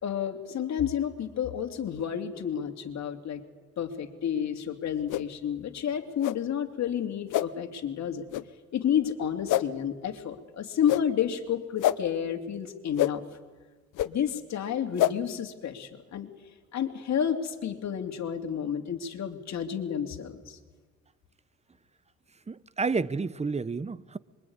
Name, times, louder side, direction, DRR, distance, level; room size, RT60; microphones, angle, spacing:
voice 1, 0.0-3.4 3.8-8.3 8.7-13.2 14.0-16.3 16.7-20.6, left 9 dB, 65° left, 2.9 m, -30 dB
sound 1, 5.1-5.2 6.2-6.4 7.3-7.5 8.3-8.4 9.5-9.6 10.8-11.0 11.8-12.0 13.0-13.1 14.0-14.1 15.0-15.1, left 14 dB, 85° left, 0.9 m, -25 dB
voice 2, 22.5-24.2, right 4 dB, 20° right, 0.9 m, -30 dB
25.5 x 23.0 x 9.7 m
cardioid pair, 90°, 30 cm